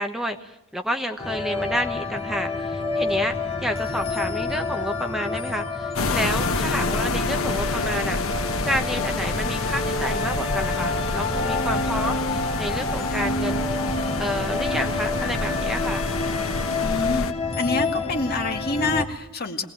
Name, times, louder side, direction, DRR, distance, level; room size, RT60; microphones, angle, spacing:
voice 1, 0.0-8.2 8.6-13.6 14.2-16.1, equal, ahead, 5 dB, 1.0 m, -30 dB
sound 1, 1.2-19.0, left 3 dB, 30° left, 2.1 m, -28 dB
sound 2, 5.9-17.3, left 3 dB, 80° left, 1.1 m, -28 dB
voice 2, 16.8-17.3 17.5-19.6, left 3 dB, 50° left, 4 dB, 2.1 m, -26 dB
22.5 x 18.5 x 8.8 m, 0.85 s
head